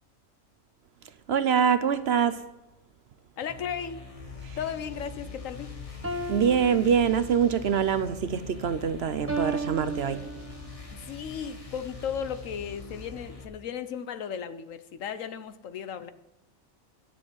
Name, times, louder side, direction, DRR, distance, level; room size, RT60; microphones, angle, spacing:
voice 1, 1.3-2.4 4.5-4.6 6.3-10.2, right 7 dB, 60° right, 0.8 m, -24 dB
voice 2, 3.4-4.0 4.6-5.8 10.9-16.1, left 8 dB, 75° left, 1.2 m, -35 dB
sound 1, 3.5-13.4, left 3 dB, 25° left, 1.5 m, -45 dB
sound 2, 4.1-13.3, left 6 dB, 60° left, 1.9 m, -46 dB
sound 3, 6.0-7.6 9.3-10.8, right 2 dB, 10° right, 0.9 m, -35 dB
10.5 x 6.8 x 8.7 m
omnidirectional pair, 1.4 m